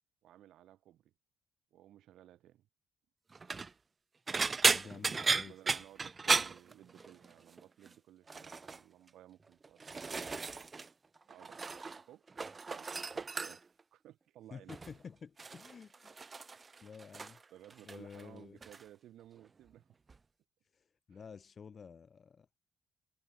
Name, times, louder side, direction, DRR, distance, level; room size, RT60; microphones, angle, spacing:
voice 1, 0.2-1.1 1.7-2.7 4.8-10.0 11.3-12.2 12.7-14.7 16.5-16.6 17.5-20.0 21.1-21.2, right 12 dB, 80° right, 7.2 m, -58 dB
sound 1, 3.3-3.7 4.3-7.3 7.6-7.9 8.3-8.8 9.5-10.9 11.2-12.0 12.3-13.8 14.7-15.0 15.4-17.4 17.7-18.2 18.6-18.8 20.1-20.2, right 4 dB, 30° right, 0.5 m, -35 dB
voice 2, 4.7-5.8 14.5-16.4 16.8-17.4 17.8-18.6 20.7-22.5, left 6 dB, 45° left, 6.2 m, -51 dB
cardioid pair, 90°, 0 cm